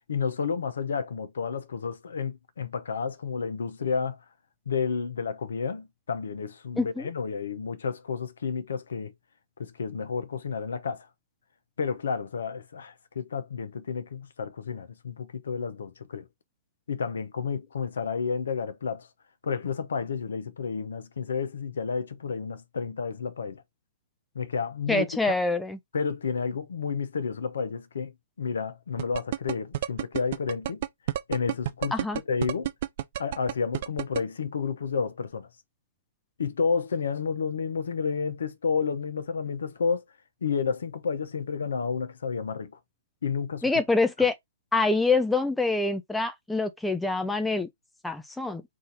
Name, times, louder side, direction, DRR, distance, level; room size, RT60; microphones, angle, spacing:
voice 1, 0.1-4.2 4.7-9.1 9.6-11.1 11.8-16.3 16.9-19.1 19.4-23.6 24.3-25.0 25.9-30.8 31.3-32.7 33.2-35.5 36.4-40.0 40.4-42.7 43.2-43.6, left 5 dB, 65° left, 0.8 m, -31 dB
voice 2, 6.8-7.1 24.9-25.8 31.9-32.2 43.6-44.3 44.7-47.7 48.0-48.6, left 3 dB, 5° left, 0.5 m, -25 dB
sound 1, 29.0-34.2, right 12 dB, 50° right, 0.5 m, -29 dB
3.7 x 2.7 x 4.1 m
figure-of-eight pair, 125°, 0 cm